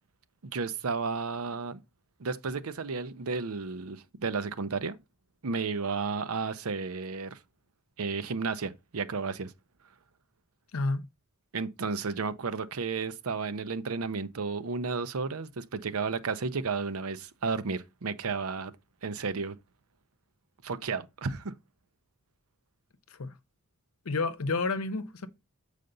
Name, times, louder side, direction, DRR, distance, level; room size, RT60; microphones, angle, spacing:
voice 1, 0.4-1.8 2.2-5.0 5.4-7.4 8.0-9.5 11.5-18.7 19.0-19.6 20.6-21.5, right 4 dB, 85° right, 0.7 m, -32 dB
voice 2, 10.7-11.0 23.1-23.3 24.0-25.3, left 3 dB, 90° left, 0.8 m, -30 dB
7.8 x 5.1 x 3.9 m
head